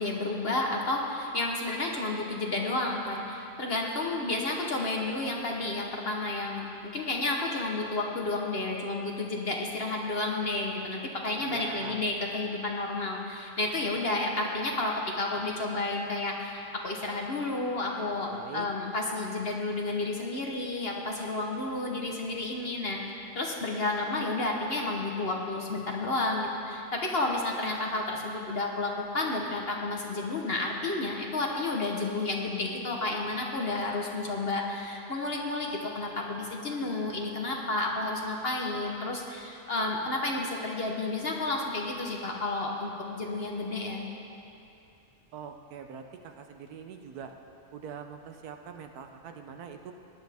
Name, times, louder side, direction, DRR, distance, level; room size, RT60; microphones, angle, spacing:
voice 1, 0.0-23.0 23.3-44.0, left 2 dB, 45° left, 0 dB, 1.1 m, -31 dB
voice 2, 11.4-12.0 18.3-18.7 45.3-47.3 47.7-49.9, right 7 dB, 80° right, 5 dB, 1.2 m, -43 dB
18.5 x 10.5 x 3.5 m, 2.8 s
omnidirectional pair, 1.6 m